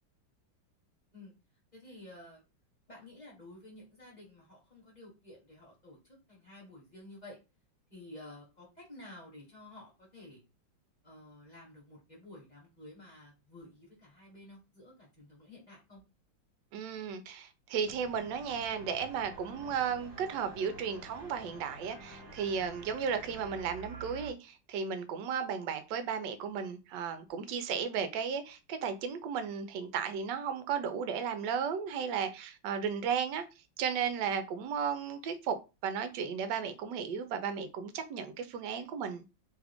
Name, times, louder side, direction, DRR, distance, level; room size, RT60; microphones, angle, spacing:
voice 1, 1.7-2.4 2.9-6.0 6.3-7.4 7.9-10.4 11.0-16.0, left 1 dB, 25° left, 1.1 m, -52 dB
voice 2, 16.7-33.4 33.8-35.6 35.8-39.2, right 7 dB, 75° right, 1.2 m, -34 dB
sound 1, 17.8-23.6, left 2 dB, 65° left, 1.6 m, -53 dB
sound 2, 18.4-24.3, right 4 dB, 50° right, 1.3 m, -51 dB
3.3 x 2.4 x 3.4 m
omnidirectional pair, 2.1 m